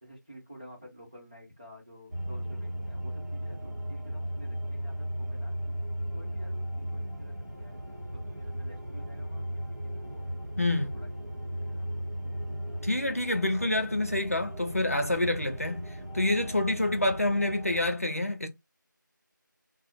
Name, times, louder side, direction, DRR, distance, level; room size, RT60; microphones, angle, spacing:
voice 1, 0.0-5.5 6.1-10.2 10.7-11.9, equal, 25° right, 0.9 m, -52 dB
sound 1, 2.1-17.9, equal, 55° right, 0.8 m, -36 dB
voice 2, 10.6-10.9 12.8-18.5, left 1 dB, 45° left, 0.4 m, -27 dB
2.5 x 2.0 x 2.8 m
figure-of-eight pair, 170°, 11 cm